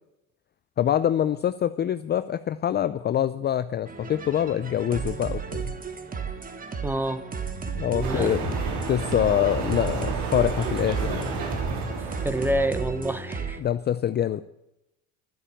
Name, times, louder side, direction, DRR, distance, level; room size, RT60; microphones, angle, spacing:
voice 1, 0.8-5.7 7.7-8.6 8.9-11.4 13.6-14.4, left 10 dB, 30° left, 12 dB, 0.5 m, -25 dB
sound 1, 3.9-13.6, right 5 dB, 25° right, 1.5 m, -34 dB
voice 2, 6.8-7.3 8.0-8.6 12.0-13.6, right 1 dB, 5° right, 12 dB, 1.1 m, -28 dB
sound 2, 8.0-12.9, right 4 dB, 70° right, 3.3 m, -31 dB
12.0 x 9.8 x 8.5 m, 0.89 s
supercardioid pair, 100°, 36 cm